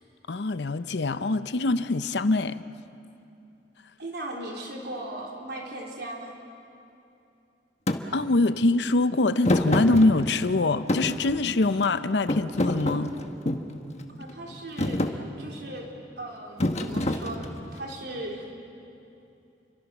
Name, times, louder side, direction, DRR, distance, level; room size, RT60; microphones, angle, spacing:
voice 1, 0.3-2.6 8.1-13.1, left 2 dB, 75° left, 12 dB, 0.7 m, -24 dB
voice 2, 4.0-6.4 14.2-15.9 16.2-18.5, right 1 dB, 70° right, -1 dB, 4.1 m, -38 dB
Thump thud, 7.9-8.0 9.4-10.5 10.9-11.9 12.3-13.7 14.3-14.5 14.8-15.2 16.6-17.7, left 1 dB, 40° left, 1.3 m, -26 dB
30.0 x 24.0 x 6.1 m, 2.7 s
head